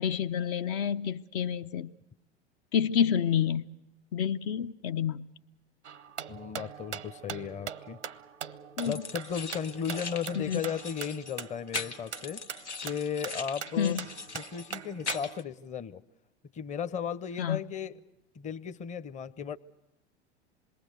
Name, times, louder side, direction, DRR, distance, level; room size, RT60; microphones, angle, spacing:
voice 1, 0.0-1.9 2.7-3.7 4.1-5.3 8.8-9.0 10.4-10.6 13.8-14.1 17.4-17.6, left 8 dB, 50° left, 0.7 m, -28 dB
sound 1, 5.8-15.4, right 8 dB, 90° right, 0.7 m, -42 dB
voice 2, 6.3-8.0 8.8-12.4 12.8-14.0 14.3-16.0 16.5-17.9 18.3-19.6, left 7 dB, 20° left, 0.8 m, -35 dB
sound 2, 8.8-15.4, left 4 dB, 90° left, 1.1 m, -41 dB
27.0 x 21.5 x 6.6 m
figure-of-eight pair, 90°, 34 cm